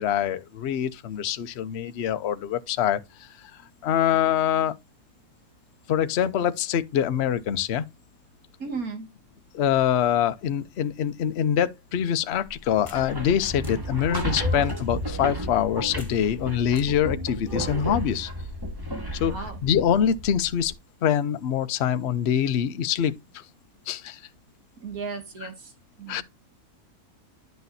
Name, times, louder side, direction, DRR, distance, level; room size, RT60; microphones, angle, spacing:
voice 1, 0.0-3.3 3.8-4.7 5.9-7.8 9.5-18.3 19.2-19.3 19.6-20.7 21.0-23.4 23.9-24.2 26.1-26.2, left 9 dB, 55° left, 0.9 m, -24 dB
voice 2, 8.6-9.1 19.2-19.6 24.8-25.7 26.0-26.2, right 4 dB, 65° right, 2.3 m, -35 dB
sound 1, 12.7-20.7, equal, 15° right, 1.6 m, -32 dB
sound 2, 12.9-13.0 13.6-13.7 14.3-14.9 16.0-16.1 16.7-16.9 17.5-18.0, left 2 dB, 20° left, 1.8 m, -40 dB
10.5 x 6.1 x 2.6 m
omnidirectional pair, 1.6 m